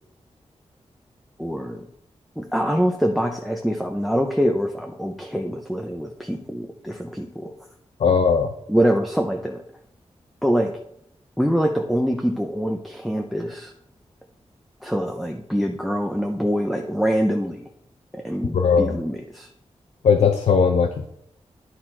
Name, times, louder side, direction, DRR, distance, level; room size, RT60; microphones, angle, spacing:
voice 1, 1.4-1.9 2.4-7.5 8.7-9.6 10.4-10.7 11.4-13.7 14.8-17.7 18.1-19.5, equal, ahead, 2 dB, 0.6 m, -24 dB
voice 2, 8.0-8.5 18.5-18.9 20.0-21.1, left 6 dB, 80° left, 4 dB, 0.6 m, -18 dB
10.5 x 4.3 x 4.4 m, 0.73 s
wide cardioid pair, 160°, 11 cm